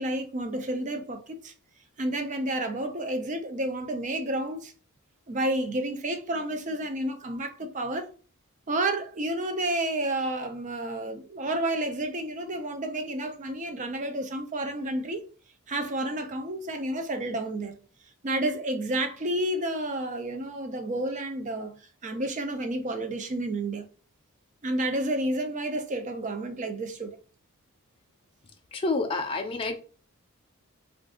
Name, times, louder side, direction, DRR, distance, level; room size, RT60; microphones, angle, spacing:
voice 1, 0.0-1.5 2.0-4.7 5.3-8.1 8.7-15.2 15.7-17.7 18.2-23.9 24.6-27.2, right 1 dB, 35° right, 0.4 m, -30 dB
voice 2, 28.7-29.8, left 3 dB, 25° left, 0.4 m, -28 dB
2.5 x 2.3 x 3.6 m
head